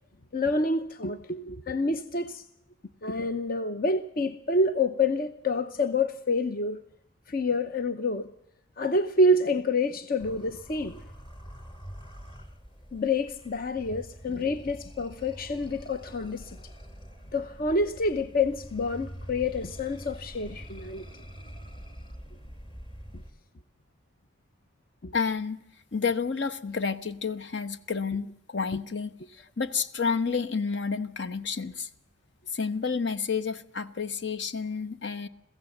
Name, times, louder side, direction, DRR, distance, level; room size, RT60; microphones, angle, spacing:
voice 1, 0.3-2.4 3.0-6.8 7.3-8.3 8.8-11.0 12.9-16.6 17.3-21.1 25.0-25.1, left 2 dB, 45° left, 0.8 m, -27 dB
sound 1, 10.2-23.3, equal, 25° left, 2.2 m, -45 dB
voice 2, 25.1-25.6 25.9-31.9 32.5-35.3, left 5 dB, 65° left, 1.1 m, -30 dB
22.5 x 15.5 x 7.9 m
head